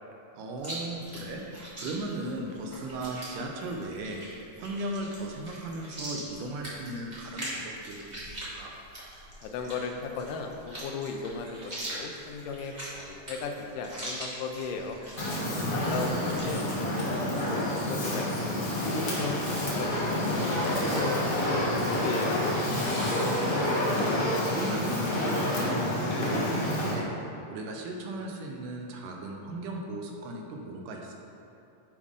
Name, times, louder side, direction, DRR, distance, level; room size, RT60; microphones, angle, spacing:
voice 1, 0.3-4.2 4.6-8.7 15.6-16.1 16.4-16.6 23.0-27.1 27.5-31.2, right 1 dB, 80° right, 1 dB, 2.3 m, -37 dB
Chewing mastication, 0.6-16.5, right 1 dB, 35° right, 0.7 m, -42 dB
voice 2, 9.4-15.0 15.7-16.6 17.0-20.7 21.0-22.4, left 4 dB, 85° left, 4 dB, 2.3 m, -37 dB
Fire, 15.2-26.9, left 1 dB, 50° left, 1.0 m, -28 dB
10.5 x 4.9 x 3.6 m, 2.7 s
omnidirectional pair, 3.7 m